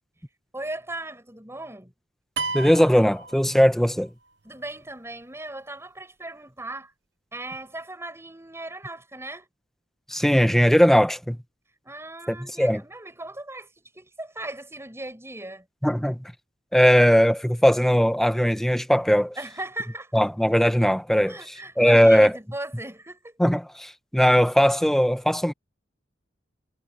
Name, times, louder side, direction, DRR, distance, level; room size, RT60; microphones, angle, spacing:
voice 1, 0.5-1.9 4.4-6.9 7.3-9.5 11.8-15.7 19.4-20.3 21.3-23.5, right 2 dB, 15° right, 6.6 m, -37 dB
sound 1, 2.4-4.1, right 4 dB, 65° right, 0.9 m, -33 dB
voice 2, 2.5-4.1 10.1-11.4 12.3-12.8 15.8-16.3 16.7-19.3 20.1-21.4 21.8-22.3 23.4-25.5, equal, ahead, 1.1 m, -19 dB
head